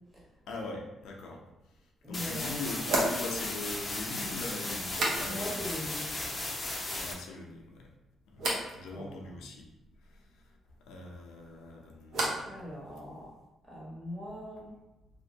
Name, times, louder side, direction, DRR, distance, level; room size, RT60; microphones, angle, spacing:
voice 1, 0.5-1.4 2.0-5.6 6.9-7.9 8.3-9.7 10.0-10.5 10.9-12.5, left 3 dB, 85° left, 0 dB, 0.5 m, -42 dB
sound 1, 1.6-1.7 2.8-5.7 6.0-6.6 6.9-7.5 8.4-8.7 11.1-12.6 12.9-13.5, right 1 dB, 65° right, 0.7 m, -36 dB
voice 2, 2.0-2.7 5.2-6.2 8.9-9.2 12.4-13.3 13.6-14.7, equal, 10° right, -7 dB, 1.2 m, -41 dB
sound 2, 2.1-7.1, left 2 dB, 30° left, 0.5 m, -36 dB
2.5 x 2.0 x 2.7 m, 0.99 s
cardioid pair, 90°, 0 cm